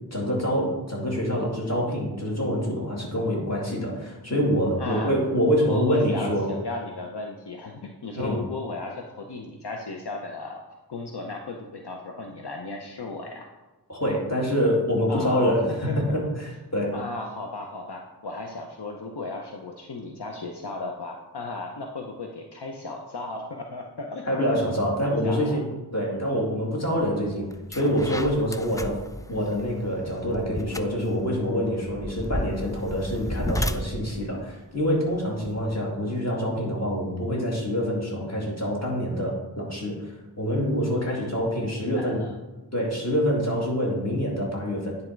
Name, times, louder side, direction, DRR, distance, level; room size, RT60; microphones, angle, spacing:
voice 1, 0.1-6.5 8.2-8.4 13.9-16.2 16.7-17.0 24.3-25.6 25.9-29.0 29.3-42.2 42.7-45.0, equal, 40° left, -3 dB, 2.2 m, -26 dB
voice 2, 4.8-5.1 5.7-10.6 10.9-13.5 15.1-16.0 16.9-24.3 24.9-25.6 41.1-41.4 41.8-42.3, left 3 dB, 75° left, 2 dB, 0.7 m, -35 dB
sound 1, 27.0-27.1 27.5-35.8, equal, 10° left, 0.3 m, -34 dB
10.0 x 3.6 x 4.5 m, 1.1 s
wide cardioid pair, 45°, 40 cm